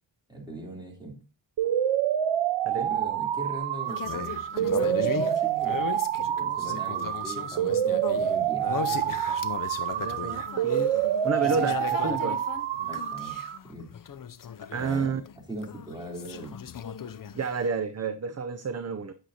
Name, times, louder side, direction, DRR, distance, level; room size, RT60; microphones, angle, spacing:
voice 1, 0.3-1.2 2.8-5.9 6.4-8.7 12.9-13.9 14.7-15.2 15.5-16.6, right 1 dB, 10° right, 3.5 m, -40 dB
sound 1, 1.6-13.6, right 10 dB, 85° right, 0.6 m, -27 dB
sound 2, 3.8-15.4 15.6-17.7, left 7 dB, 45° left, 0.6 m, -37 dB
voice 2, 9.9-11.0 11.2-12.4 14.7-15.2 17.3-19.1, right 5 dB, 35° right, 0.6 m, -30 dB
9.3 x 8.9 x 2.8 m
wide cardioid pair, 90°, 47 cm